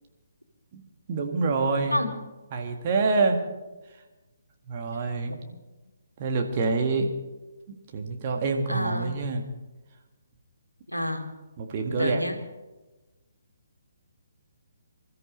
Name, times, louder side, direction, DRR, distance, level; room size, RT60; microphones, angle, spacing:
voice 1, 1.1-2.0 2.5-3.4 4.7-5.4 6.2-7.1 7.7-9.4 11.6-12.2, right 3 dB, 35° right, 3 dB, 1.9 m, -26 dB
voice 2, 8.7-9.1 10.9-11.3 12.0-12.4, left 1 dB, 90° left, 4 dB, 2.0 m, -28 dB
26.0 x 13.5 x 3.3 m, 1.1 s
figure-of-eight pair, 135°, 0 cm